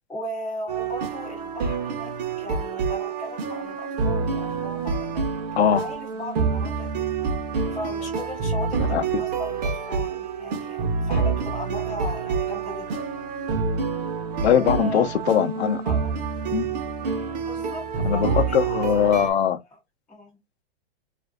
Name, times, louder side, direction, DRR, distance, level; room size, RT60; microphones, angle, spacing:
voice 1, 0.1-2.1 2.4-5.2 5.7-6.9 7.7-9.6 9.9-13.3 14.4-15.1 15.8-16.2 17.4-19.1 20.1-20.4, equal, ahead, 0.3 m, -37 dB
sound 1, 0.7-19.3, right 5 dB, 40° right, 0.6 m, -27 dB
voice 2, 8.8-9.2 14.4-15.8 16.5-16.7 18.0-19.6, left 9 dB, 90° left, 0.6 m, -21 dB
2.5 x 2.4 x 2.2 m
hypercardioid pair, 155°, 31 cm